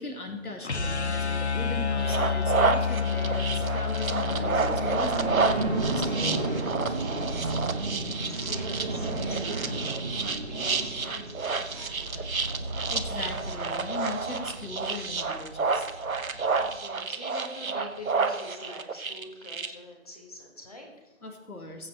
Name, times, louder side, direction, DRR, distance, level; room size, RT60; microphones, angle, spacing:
voice 1, 0.0-6.7 7.0-7.1 7.4-7.5 12.9-15.9 21.2-21.9, left 2 dB, 90° left, 4 dB, 1.8 m, -39 dB
sound 1, 0.6-6.7, left 5 dB, 50° left, 0.6 m, -30 dB
sound 2, 2.0-19.7, right 4 dB, 70° right, 1.0 m, -30 dB
sound 3, 4.2-16.7, right 2 dB, 30° right, 1.4 m, -33 dB
voice 2, 7.8-12.3 16.3-21.1, left 1 dB, 25° left, 1 dB, 1.5 m, -45 dB
20.0 x 7.5 x 3.2 m, 1.1 s
figure-of-eight pair, 165°, 43 cm